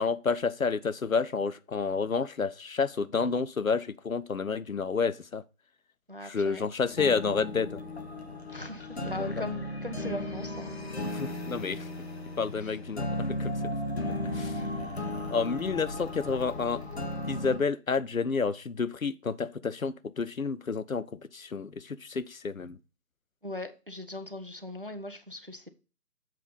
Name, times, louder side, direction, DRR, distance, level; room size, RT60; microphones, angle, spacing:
voice 1, 0.0-5.4 6.2-7.8 9.2-9.4 11.0-11.9 12.4-13.5 14.3-14.6 15.3-16.8 17.3-22.8, left 5 dB, 60° left, 0.6 m, -30 dB
voice 2, 6.1-6.7 8.5-11.0 12.6-12.7 14.3-14.7 23.4-25.7, left 1 dB, 35° right, 0.5 m, -40 dB
sound 1, 6.8-17.6, left 1 dB, 40° left, 1.2 m, -35 dB
7.4 x 3.8 x 5.4 m
figure-of-eight pair, 160°, 48 cm